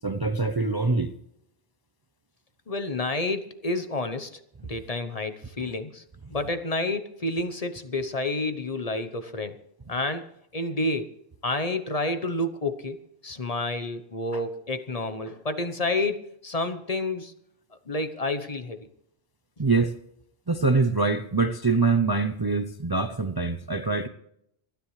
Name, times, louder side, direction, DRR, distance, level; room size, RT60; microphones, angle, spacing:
voice 1, 0.0-1.1 14.3-14.4 19.6-19.9 20.5-24.1, right 3 dB, 25° right, 0.6 m, -24 dB
voice 2, 2.7-6.0 6.3-9.6 9.9-10.3 10.5-11.1 11.4-13.0 13.2-17.3 17.9-18.8, left 2 dB, 35° left, 1.0 m, -29 dB
28.0 x 10.0 x 3.2 m
omnidirectional pair, 1.1 m